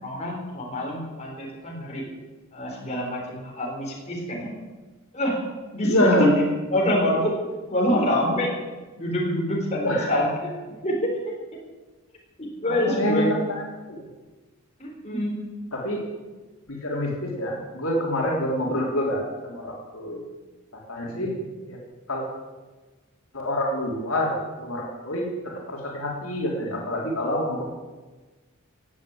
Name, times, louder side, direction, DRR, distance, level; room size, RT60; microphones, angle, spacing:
voice 1, 0.0-2.0 2.5-4.5 5.1-5.4 5.7-6.3 6.7-7.3 7.7-8.5 9.0-10.3 10.8-11.1 12.4-13.3 14.8-15.4 21.1-21.3, left 1 dB, 30° left, -2 dB, 4.2 m, -25 dB
voice 2, 5.8-6.4 9.8-10.2 12.7-13.6 13.9-14.1 15.7-16.0 16.7-20.2 20.9-21.3 21.7-21.8 22.1-22.2 23.3-27.6, equal, 70° left, -2 dB, 3.5 m, -26 dB
17.0 x 8.2 x 8.6 m, 1.3 s
head